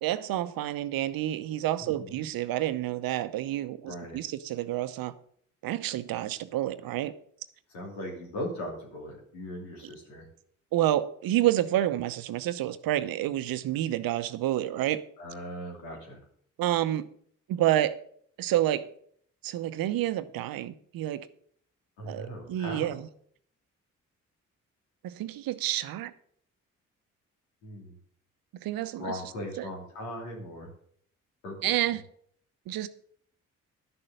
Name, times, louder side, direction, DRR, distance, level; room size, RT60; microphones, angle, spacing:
voice 1, 0.0-5.1 5.6-7.1 10.7-15.0 16.6-17.1 17.5-18.0 18.4-18.9 19.4-21.3 22.1-23.1 25.0-26.1 28.6-29.1 29.6-29.7 31.6-32.0 32.7-32.9, right 13 dB, 65° right, 0.8 m, -29 dB
voice 2, 1.8-2.2 3.9-4.2 7.7-10.3 15.2-16.2 22.0-23.0 27.6-28.0 29.0-30.7 31.4-31.5 31.9-32.0, left 1 dB, 85° left, 3.0 m, -39 dB
11.5 x 6.8 x 6.5 m
hypercardioid pair, 45°, 37 cm